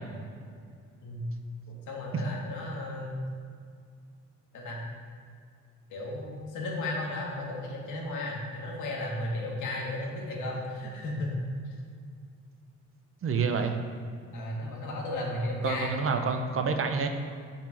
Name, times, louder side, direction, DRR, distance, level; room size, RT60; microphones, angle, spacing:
voice 1, 1.7-3.2 4.5-4.8 5.9-11.4 14.3-15.9 16.3-16.4, left 1 dB, 80° left, -2 dB, 1.7 m, -34 dB
voice 2, 13.2-13.7 15.6-17.1, right 5 dB, 45° right, 6 dB, 0.7 m, -28 dB
5.9 x 4.5 x 5.8 m, 2.2 s
cardioid pair, 90°, 30 cm